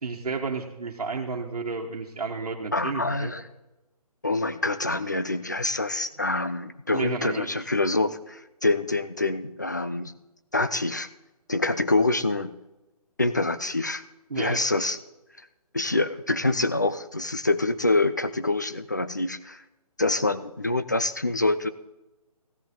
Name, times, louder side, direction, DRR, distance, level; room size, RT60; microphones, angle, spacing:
voice 1, 0.0-3.3 6.9-7.6 14.3-14.6, right 4 dB, 70° right, -3 dB, 1.4 m, -32 dB
voice 2, 2.7-3.4 4.2-10.1 10.5-11.1 11.5-12.6 13.2-14.0 14.3-15.0 15.4-15.5 15.7-19.6 20.0-21.7, left 2 dB, 30° left, 14 dB, 0.4 m, -26 dB
15.5 x 10.5 x 3.7 m, 1.0 s
hypercardioid pair, 180°, 20 cm